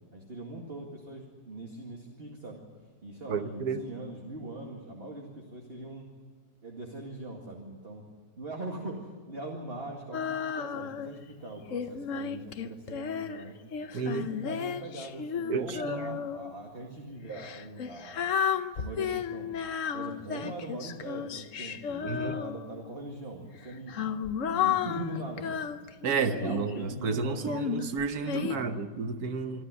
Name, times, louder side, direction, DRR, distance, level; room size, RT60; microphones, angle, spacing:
voice 1, 0.1-2.6 3.0-6.1 6.6-8.0 8.4-13.6 14.0-18.3 18.7-19.5 19.9-25.6 26.2-27.7 28.4-28.8, right 2 dB, 35° right, 2.3 m, -41 dB
voice 2, 3.3-3.8 13.9-14.3 15.5-16.2 22.0-22.4 26.0-29.6, right 5 dB, 60° right, 1.4 m, -31 dB
Female singing, 10.1-11.2 11.7-16.5 17.3-22.9 23.6-26.8 27.4-28.6, left 7 dB, 55° left, 1.0 m, -33 dB
26.5 x 12.5 x 9.5 m
omnidirectional pair, 1.9 m